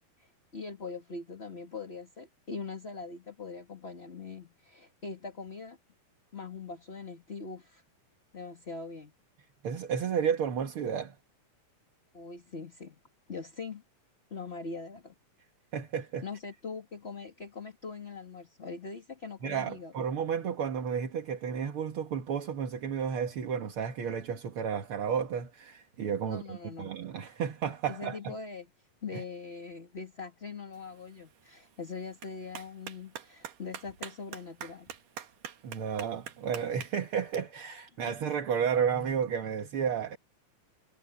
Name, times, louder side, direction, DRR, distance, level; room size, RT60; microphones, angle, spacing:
voice 1, 0.2-5.8 6.3-7.8 8.3-9.1 12.1-13.0 13.3-13.8 14.3-15.1 16.2-19.9 26.3-26.9 27.9-28.7 29.0-35.0 38.1-38.2, left 4 dB, 20° left, 2.0 m, -42 dB
voice 2, 9.6-11.2 15.7-16.2 19.4-28.3 29.1-29.2 35.6-40.2, right 7 dB, 50° right, 2.0 m, -32 dB
Clapping, 30.7-37.4, right 10 dB, 90° right, 3.3 m, -47 dB
omnidirectional pair, 3.6 m